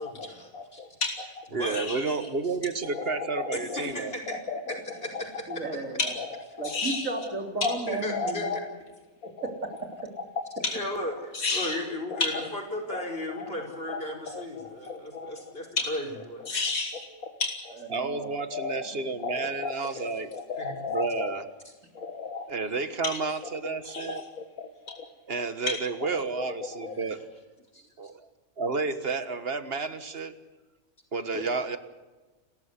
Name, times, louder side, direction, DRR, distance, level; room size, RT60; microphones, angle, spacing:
voice 1, 0.0-0.8 1.5-1.9 3.7-4.4 4.7-5.4 7.9-8.6 10.7-16.4 20.0-20.1 20.6-20.7 26.8-27.1 27.7-27.8, left 1 dB, 40° left, 1 dB, 5.4 m, -36 dB
voice 2, 0.5-2.1 2.9-3.8 4.3-4.8 6.0-7.1 7.6-7.8 8.1-8.6 9.2-9.3 10.6-10.8 11.3-11.8 12.1-12.5 12.9-13.1 13.4-13.5 13.9-14.0 14.3-15.3 15.8-15.9 16.4-17.7 18.5-18.8 19.2-21.3 21.9-22.5 23.0-23.2 23.9-25.1 25.7-25.8 26.1-26.9, left 3 dB, 75° left, 5 dB, 2.1 m, -33 dB
voice 3, 1.5-4.1 17.9-20.3 20.9-21.4 22.5-24.2 25.3-27.2 28.0-28.2 28.6-30.3 31.1-31.8, right 4 dB, 45° right, 11 dB, 1.7 m, -31 dB
voice 4, 5.5-6.1 6.6-8.5 9.4-9.7 10.0-10.1 17.9-18.3 18.7-18.8 31.3-31.5, right 3 dB, 60° right, 4 dB, 3.8 m, -34 dB
29.5 x 14.0 x 8.2 m, 1.2 s
omnidirectional pair, 1.5 m